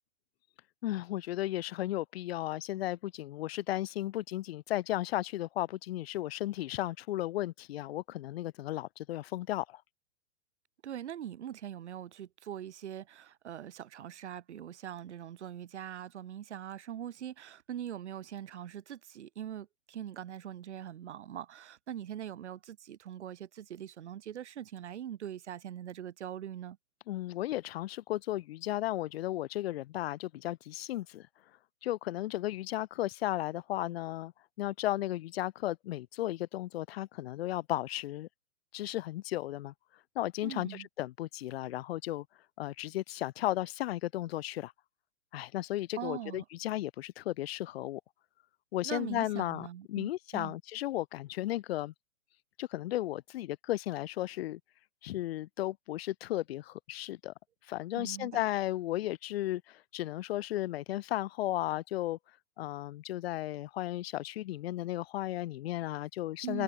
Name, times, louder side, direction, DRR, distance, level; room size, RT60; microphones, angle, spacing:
voice 1, 0.8-9.8 27.1-31.3 31.8-34.3 34.6-38.3 38.7-39.7 40.1-42.2 42.6-44.7 45.3-48.0 48.7-51.9 52.6-54.6 55.0-57.3 57.7-62.2 62.6-66.6, left 15 dB, 55° left, 1.5 m, -35 dB
voice 2, 10.8-26.8 40.4-40.9 46.0-46.4 48.8-50.6 58.0-58.4 66.4-66.6, right 10 dB, 70° right, 6.9 m, -42 dB
hypercardioid pair, 130°, 35 cm